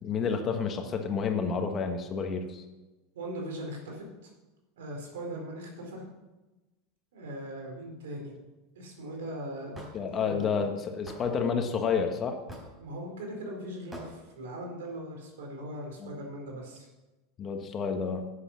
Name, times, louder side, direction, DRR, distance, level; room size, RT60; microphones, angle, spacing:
voice 1, 0.0-2.6 9.9-12.4 16.0-16.1 17.4-18.3, left 5 dB, 30° left, 5 dB, 1.6 m, -30 dB
voice 2, 3.1-4.3 4.8-6.0 7.1-8.3 8.8-10.6 12.8-16.9, right 1 dB, 90° right, 0 dB, 4.3 m, -40 dB
Hammer / Wood, 9.7-9.9 11.1-11.2 12.5-12.8 13.9-14.1, right 1 dB, 15° right, 4.4 m, -43 dB
11.5 x 8.4 x 6.4 m, 1.1 s
supercardioid pair, 125°, 0 cm